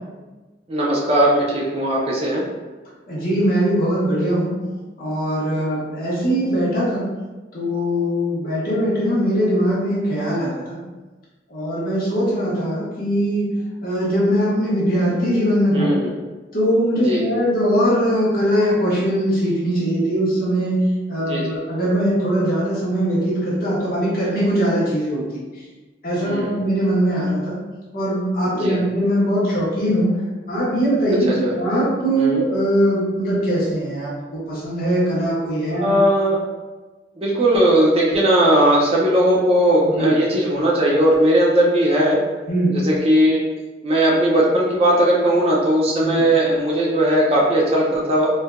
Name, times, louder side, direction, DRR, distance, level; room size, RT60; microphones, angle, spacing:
voice 1, 0.7-2.5 5.6-5.8 15.7-16.0 17.0-17.2 21.3-21.6 26.2-26.5 28.6-28.8 31.3-31.5 32.2-32.4 35.8-36.4 37.2-42.2 42.7-43.4 43.8-48.3, right 1 dB, 30° right, -4 dB, 0.5 m, -18 dB
voice 2, 3.1-4.6 5.0-7.0 7.5-10.8 11.5-13.5 13.8-16.0 16.5-25.4 26.0-27.6 27.9-30.1 30.5-36.0 39.8-40.2 42.5-42.8 46.0-46.2, equal, 50° left, -7 dB, 1.1 m, -21 dB
4.4 x 2.5 x 2.2 m, 1.2 s
head